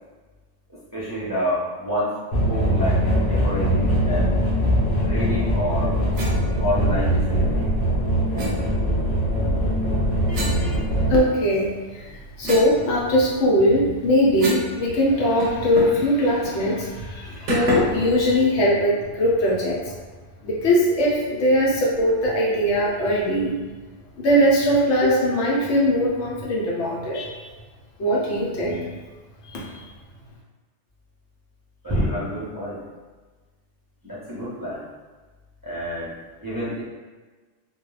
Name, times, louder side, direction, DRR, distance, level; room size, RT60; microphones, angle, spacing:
voice 1, 0.7-2.1 2.4-4.3 5.0-5.9 6.6-7.7 31.8-32.8 34.0-34.8 35.6-36.1 36.4-36.8, equal, 25° right, -11 dB, 0.6 m, -28 dB
sound 1, 2.3-11.2, equal, 55° left, 0.7 m, -22 dB
sound 2, 6.1-6.4 8.4-8.5 10.3-11.4 11.8-14.7 15.0-15.1 15.4-16.1 16.4-16.6 17.5-18.0, right 2 dB, 85° right, 0.9 m, -30 dB
voice 2, 10.3-10.8 11.1-19.9 20.4-23.5 24.2-27.4 28.0-28.8 29.4-29.8, equal, 75° left, -4 dB, 1.0 m, -21 dB
2.3 x 2.2 x 3.1 m, 1.3 s
omnidirectional pair, 1.2 m